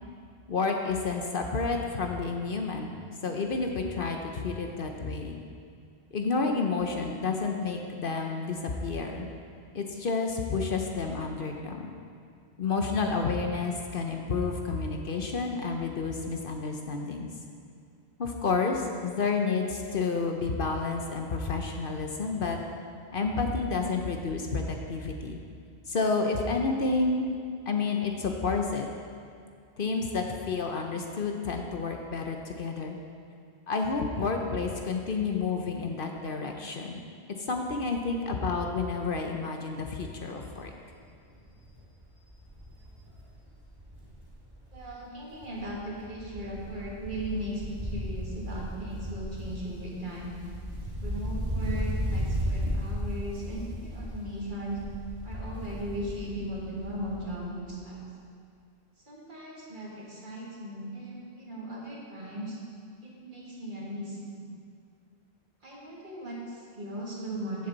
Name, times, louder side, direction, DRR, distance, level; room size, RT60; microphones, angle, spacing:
voice 1, 0.5-2.9 3.2-5.4 6.1-9.3 9.7-11.9 12.6-17.3 18.2-22.6 23.1-25.4 25.9-27.3 27.7-28.9 29.8-33.0 33.7-37.0 37.4-40.7, left 4 dB, 55° left, 3 dB, 0.9 m, -30 dB
Wind, 40.3-40.6 41.0-41.1 41.4-44.9 45.2-57.4 57.6-57.7, equal, 20° right, 1.6 m, -35 dB
voice 2, 44.7-50.4 51.0-54.8 55.2-58.0 59.1-62.6 63.0-64.4 65.6-67.7, right 1 dB, 50° right, -4 dB, 2.1 m, -37 dB
15.0 x 6.7 x 4.0 m, 2.3 s
omnidirectional pair, 1.1 m